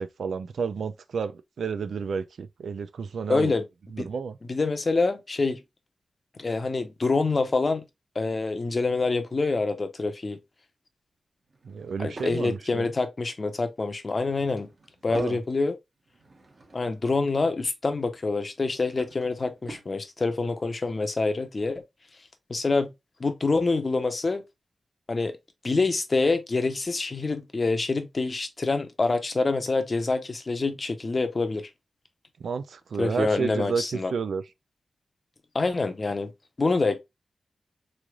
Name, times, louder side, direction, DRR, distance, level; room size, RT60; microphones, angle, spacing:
voice 1, 0.0-3.5 3.9-4.4 11.7-12.9 15.1-15.4 32.4-34.4, right 5 dB, 90° right, 0.4 m, -31 dB
voice 2, 3.3-3.6 4.0-4.1 4.5-5.6 6.4-7.8 8.2-10.4 12.0-14.7 15.0-15.8 16.7-21.8 22.5-22.9 23.2-24.4 25.1-25.3 25.6-31.7 33.0-34.1 35.5-36.3 36.6-37.0, left 3 dB, 35° left, 0.7 m, -26 dB
Drawer open or close / Wood, 11.4-12.4 14.1-15.4 16.0-17.1 18.4-20.0, right 2 dB, 40° right, 1.0 m, -49 dB
3.8 x 3.2 x 2.3 m
wide cardioid pair, 145°, 0 cm